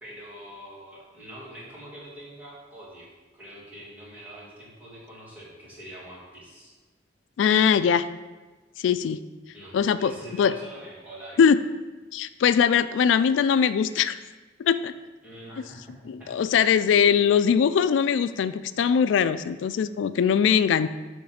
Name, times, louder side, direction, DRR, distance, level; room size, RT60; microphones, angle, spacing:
voice 1, 0.0-6.7 9.5-11.4 15.2-16.3 16.8-16.9, right 1 dB, 10° right, -7 dB, 1.7 m, -44 dB
voice 2, 7.4-8.1 8.8-9.2 9.7-10.1 10.4-10.5 11.4-11.6 12.1-14.2 14.6-14.9 16.1-20.9, left 7 dB, 90° left, 14 dB, 0.3 m, -21 dB
6.4 x 3.3 x 5.7 m, 1.2 s
head